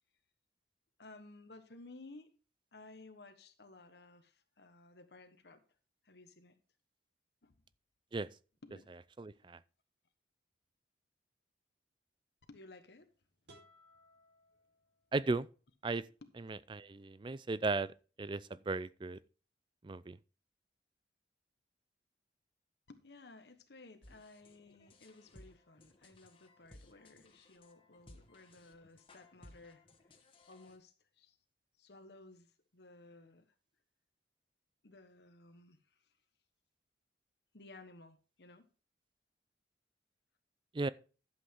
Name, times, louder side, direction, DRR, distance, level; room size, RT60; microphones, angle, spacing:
voice 1, 1.0-2.3 2.7-5.6 6.0-6.6 7.4-7.6 8.6-8.8 9.3-9.6 12.5-13.1 16.2-16.3 22.9-30.2 30.5-31.4 31.8-33.5 34.8-36.2 37.5-38.7, left 2 dB, 70° left, 1.2 m, -57 dB
voice 2, 9.2-9.6 15.1-15.5 15.8-16.0 16.4-19.2 19.8-20.2 40.7-40.9, right 3 dB, 25° right, 0.4 m, -36 dB
sound 1, 13.4-15.4, equal, 75° right, 4.3 m, -63 dB
sound 2, 24.0-30.8, left 1 dB, 30° left, 1.6 m, -60 dB
11.5 x 7.8 x 3.7 m
head